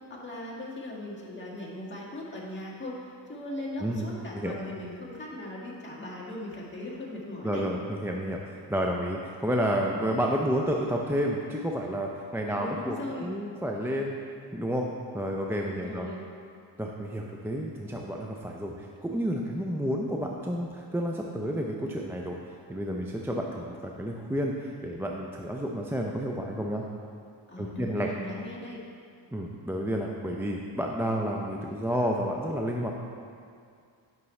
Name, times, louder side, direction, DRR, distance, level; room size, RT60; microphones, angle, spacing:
voice 1, 0.1-7.6 12.5-13.3 15.7-16.2 27.5-28.8, left 1 dB, 25° left, -6 dB, 1.8 m, -39 dB
voice 2, 7.4-14.2 14.5-14.9 15.1-16.1 16.8-22.4 22.7-26.8 27.6-28.1 29.3-32.9, equal, 5° right, 0 dB, 0.4 m, -30 dB
9.7 x 5.9 x 3.2 m, 2.3 s
cardioid pair, 90°, 45 cm